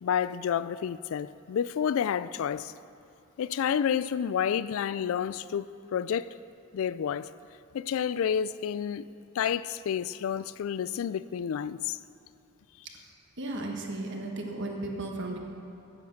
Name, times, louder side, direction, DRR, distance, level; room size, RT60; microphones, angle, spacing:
voice 1, 0.0-2.7 3.4-6.3 6.7-7.3 7.7-9.0 9.4-12.0, left 8 dB, 65° left, 0.3 m, -30 dB
voice 2, 13.4-15.4, right 2 dB, 55° right, 1.4 m, -35 dB
10.0 x 9.4 x 6.6 m
head